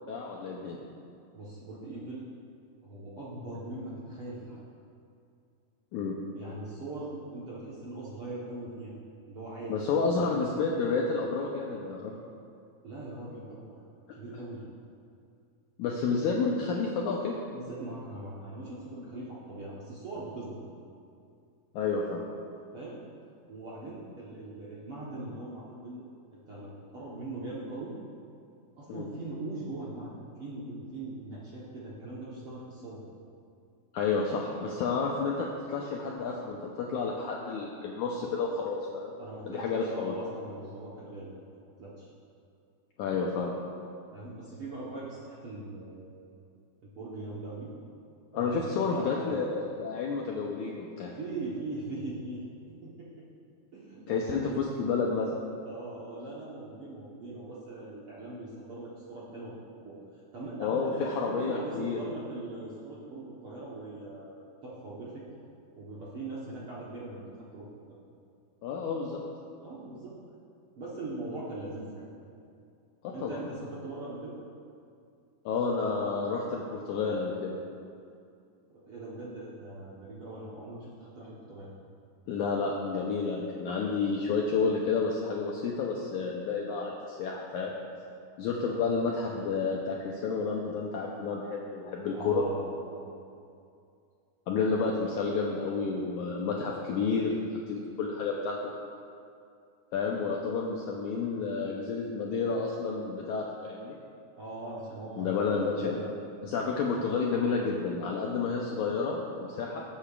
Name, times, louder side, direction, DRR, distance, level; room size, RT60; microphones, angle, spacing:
voice 1, 0.1-0.8 5.9-6.2 9.7-12.1 15.8-17.3 21.7-22.2 28.9-29.1 33.9-39.1 39.5-40.1 43.0-43.5 48.3-51.1 54.1-55.4 60.6-62.0 68.6-69.2 73.2-73.4 75.5-77.5 82.3-87.7 88.4-92.4 94.5-98.6 99.9-104.0 105.2-106.0 106.4-109.8, left 4 dB, 85° left, -2 dB, 1.7 m, -30 dB
voice 2, 1.3-2.3 2.8-4.6 6.3-9.0 9.3-10.4 12.8-13.8 14.1-14.6 17.5-20.6 22.7-23.1 23.5-26.1 26.3-27.9 28.8-33.0 39.2-41.3 41.8-42.1 44.1-46.1 46.8-47.7 48.3-49.5 51.1-53.3 53.7-54.6 55.6-59.6 59.8-60.0 60.3-65.2 65.8-68.0 69.6-70.2 70.8-72.1 73.1-74.4 78.7-81.7 88.7-88.8 92.1-93.2 104.3-106.0, right 2 dB, 70° right, -7 dB, 1.3 m, -41 dB
19.0 x 8.4 x 2.5 m, 2.5 s
omnidirectional pair, 4.4 m